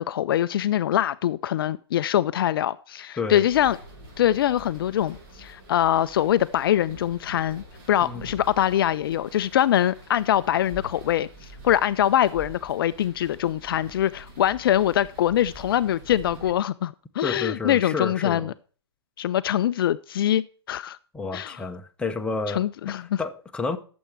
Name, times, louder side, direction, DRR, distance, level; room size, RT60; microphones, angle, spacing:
voice 1, 0.0-3.8 4.2-18.5 19.2-21.0 21.3-21.6 22.5-23.2, left 11 dB, 55° left, 0.4 m, -23 dB
sound 1, 3.5-16.5, right 1 dB, 40° right, 6.7 m, -45 dB
voice 2, 17.2-18.5 21.1-22.6 23.2-23.8, left 4 dB, 5° left, 0.8 m, -30 dB
12.0 x 7.1 x 4.5 m
hypercardioid pair, 125°, 14 cm